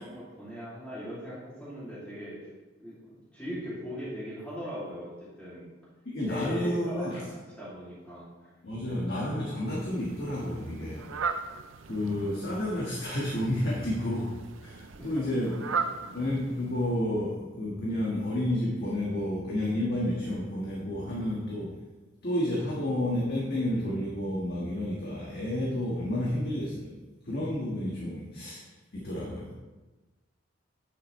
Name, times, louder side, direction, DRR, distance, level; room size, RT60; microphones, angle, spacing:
voice 1, 0.0-2.5 2.8-5.7 6.2-8.5 15.0-15.3, equal, 5° left, -10 dB, 2.5 m, -40 dB
voice 2, 6.0-7.2 8.6-11.1 11.9-15.5 16.1-21.8 22.2-27.0 27.2-28.6 28.9-29.5, left 1 dB, 50° left, -4 dB, 1.5 m, -30 dB
Fowl, 9.6-17.0, right 5 dB, 70° right, 0.5 m, -38 dB
9.5 x 7.7 x 3.2 m, 1.2 s
head